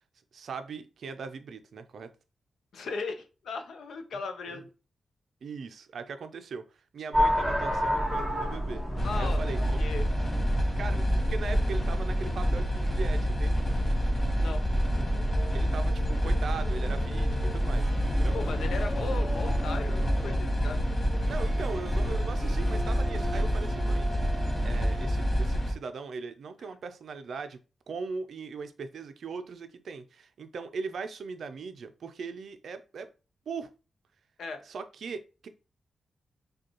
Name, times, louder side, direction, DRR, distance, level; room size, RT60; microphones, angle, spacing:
voice 1, 0.3-2.1 4.5-4.6 5.4-8.9 9.2-9.8 10.8-13.6 15.5-17.9 18.2-18.3 21.3-24.1 24.6-27.6 27.9-33.1 33.5-33.7 34.6-35.5, right 5 dB, 65° right, 9 dB, 0.4 m, -39 dB
voice 2, 2.7-4.6 9.0-9.4 9.8-10.0 14.3-14.6 18.3-20.8 34.4-34.6, left 4 dB, 80° left, 6 dB, 0.6 m, -37 dB
sound 1, 7.1-21.3, equal, 10° left, 1.1 m, -33 dB
sound 2, 9.0-25.7, equal, 35° left, 1.0 m, -28 dB
Harp, 17.5-25.4, right 1 dB, 15° right, 0.6 m, -43 dB
5.0 x 2.3 x 2.8 m, 0.33 s
wide cardioid pair, 145°, 0 cm